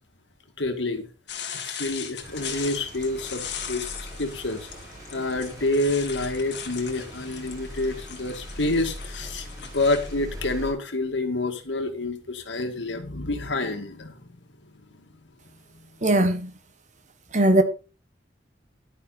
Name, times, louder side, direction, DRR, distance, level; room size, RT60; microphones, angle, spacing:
voice 1, 0.6-1.1 1.6-3.9 4.2-4.7 5.1-14.4, left 2 dB, 85° left, 2.2 m, -28 dB
sound 1, 1.3-10.1, left 8 dB, 65° left, 2.2 m, -39 dB
sound 2, 2.2-10.7, equal, 20° right, 6.7 m, -41 dB
voice 2, 16.0-16.5 17.3-17.6, right 1 dB, 40° right, 1.5 m, -19 dB
11.0 x 9.9 x 4.2 m
head